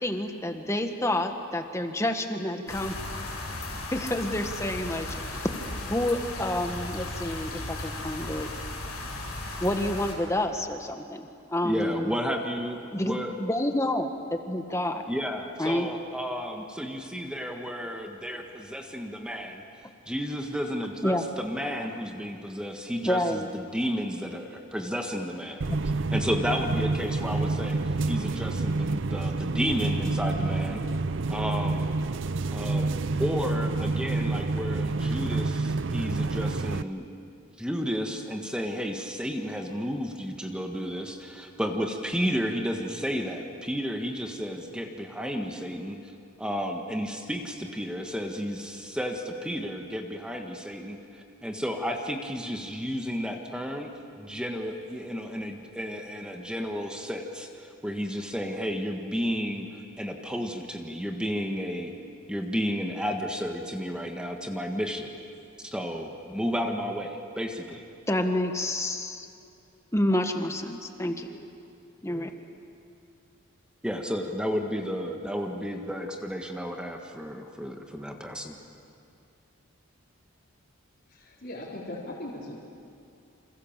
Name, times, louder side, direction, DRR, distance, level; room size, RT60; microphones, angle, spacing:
voice 1, 0.0-3.0 3.9-5.5 5.8-8.5 9.6-12.1 12.9-15.0 15.6-15.9 21.0-21.2 23.0-23.5 68.1-69.3 69.9-71.5 72.0-72.3, left 1 dB, 15° left, 5 dB, 1.5 m, -29 dB
sound 1, 2.7-10.2, left 2 dB, 85° left, 7.6 m, -36 dB
voice 2, 11.6-13.3 15.1-19.6 20.1-25.6 26.1-27.8 28.1-30.8 31.3-31.8 32.5-37.0 37.6-46.0 46.4-51.0 51.4-53.9 54.2-61.9 62.3-65.1 65.6-67.8 73.8-78.5, equal, 5° right, 3 dB, 1.6 m, -32 dB
sound 2, 25.6-36.8, right 3 dB, 60° right, 0.6 m, -28 dB
voice 3, 81.1-82.5, left 1 dB, 45° left, -7 dB, 4.4 m, -39 dB
28.5 x 27.5 x 7.4 m, 2.5 s
head